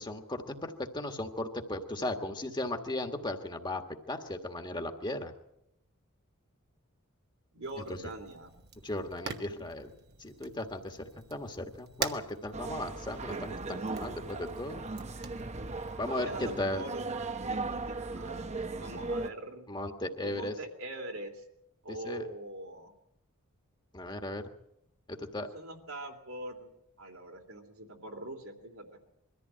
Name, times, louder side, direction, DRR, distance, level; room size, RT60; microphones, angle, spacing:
voice 1, 0.0-3.8 4.1-5.3 7.9-8.0 8.8-9.9 10.2-14.8 16.0-16.8 19.7-20.6 22.0-22.3 23.9-24.5 25.1-25.5, left 1 dB, 20° left, 5 dB, 1.6 m, -36 dB
voice 2, 7.5-8.6 16.1-17.1 17.4-18.5 18.8-19.7 20.2-21.4 21.8-22.9 25.3-26.7 27.0-28.9, right 1 dB, 75° right, 3 dB, 3.1 m, -43 dB
Fire, 7.6-16.0, right 5 dB, 50° right, 1.2 m, -44 dB
sound 1, 12.5-19.3, right 3 dB, 30° right, 0.9 m, -37 dB
22.5 x 14.5 x 8.8 m, 0.83 s
head